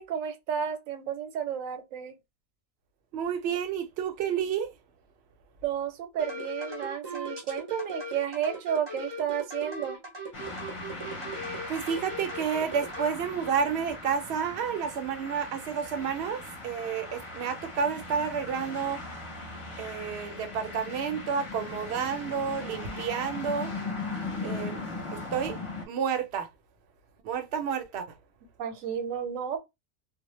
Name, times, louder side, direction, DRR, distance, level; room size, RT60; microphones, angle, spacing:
voice 1, 0.0-2.1 5.6-10.0 28.6-29.6, right 8 dB, 90° right, 1.0 m, -32 dB
voice 2, 3.1-4.7 11.7-19.0 19.8-23.7 24.4-24.8 25.1-25.6 25.9-26.5 27.2-28.1, right 7 dB, 65° right, 0.8 m, -30 dB
sound 1, 6.2-13.1, equal, 25° right, 0.6 m, -38 dB
sound 2, 10.3-25.8, left 3 dB, 30° left, 0.6 m, -39 dB
2.1 x 2.0 x 3.0 m
omnidirectional pair, 1.3 m